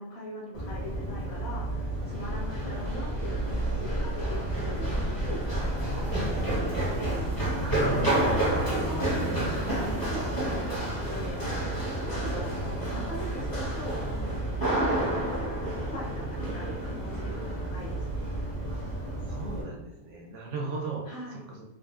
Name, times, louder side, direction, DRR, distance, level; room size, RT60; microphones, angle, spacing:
voice 1, 0.0-7.6 7.9-9.2 9.7-11.4 12.0-14.0 14.9-15.6 15.9-18.4 21.1-21.4, left 1 dB, 50° left, -5 dB, 1.1 m, -41 dB
Run, 0.5-19.6, right 1 dB, 20° left, 0.7 m, -30 dB
voice 2, 7.6-8.2 15.7-16.2 19.3-21.6, right 2 dB, 65° right, -1 dB, 0.7 m, -36 dB
3.8 x 2.1 x 2.4 m, 0.96 s
omnidirectional pair, 1.6 m